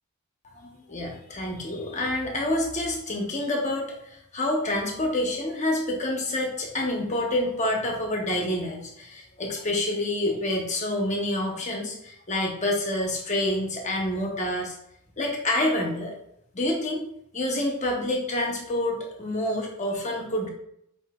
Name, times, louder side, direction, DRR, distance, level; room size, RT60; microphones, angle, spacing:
voice 1, 0.5-3.9 4.3-14.7 15.2-16.1 16.5-17.0 17.3-20.5, left 1 dB, 30° left, 1 dB, 0.9 m, -27 dB
8.2 x 2.8 x 2.3 m, 0.75 s
head